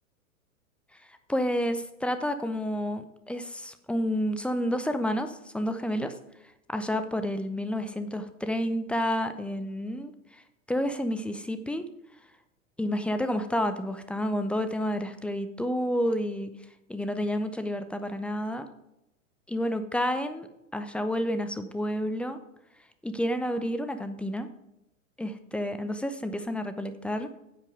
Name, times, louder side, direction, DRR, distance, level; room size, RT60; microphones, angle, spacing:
voice 1, 1.3-6.1 6.7-10.4 10.7-11.8 12.8-16.5 16.9-18.7 19.5-20.5 20.7-22.4 23.0-24.5 25.2-27.3, equal, 5° left, 9 dB, 0.6 m, -30 dB
10.0 x 8.4 x 4.9 m, 0.86 s
figure-of-eight pair, 100°, 41 cm